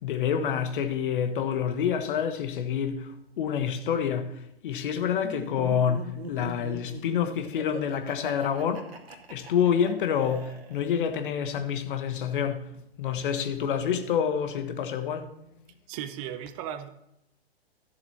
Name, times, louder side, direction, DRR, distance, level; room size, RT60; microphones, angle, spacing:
voice 1, 0.0-4.3 4.6-8.9 9.3-12.7 13.0-15.3, left 8 dB, 55° left, 1.3 m, -27 dB
Laughter, 5.2-11.2, right 3 dB, 70° right, 2.3 m, -41 dB
voice 2, 15.9-16.9, right 10 dB, 35° right, 0.9 m, -36 dB
13.0 x 7.3 x 4.4 m
hypercardioid pair, 120°, 31 cm